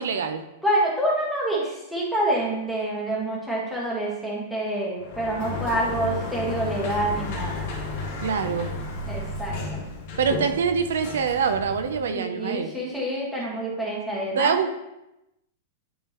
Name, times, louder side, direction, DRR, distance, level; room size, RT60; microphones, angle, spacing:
voice 1, 0.0-0.4 8.2-8.7 10.2-12.7 14.3-14.7, right 6 dB, 90° right, 8 dB, 0.5 m, -24 dB
voice 2, 0.6-7.7 9.1-9.8 12.1-14.6, right 1 dB, ahead, -6 dB, 1.6 m, -27 dB
Sliding door, 5.0-12.1, left 3 dB, 50° left, 1.5 m, -33 dB
10.0 x 3.7 x 3.0 m, 0.91 s
supercardioid pair, 155°, 0 cm